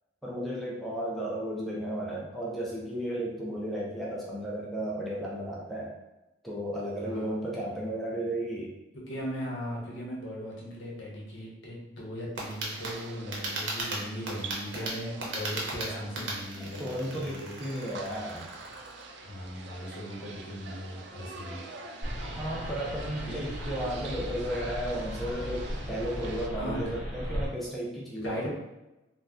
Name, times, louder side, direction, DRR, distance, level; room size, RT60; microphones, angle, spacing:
voice 1, 0.2-5.9 6.4-8.7 16.6-18.5 22.2-28.5, right 1 dB, ahead, -5 dB, 0.4 m, -34 dB
voice 2, 7.0-7.3 9.1-17.6 19.2-21.6 26.5-26.8 28.1-28.5, equal, 75° left, -4 dB, 0.9 m, -38 dB
sound 1, 12.4-19.0, right 2 dB, 85° right, 0.7 m, -37 dB
sound 2, 12.7-26.5, right 3 dB, 65° right, 0.3 m, -45 dB
sound 3, 22.0-27.5, equal, 25° right, 0.9 m, -37 dB
2.7 x 2.1 x 3.5 m, 0.99 s
head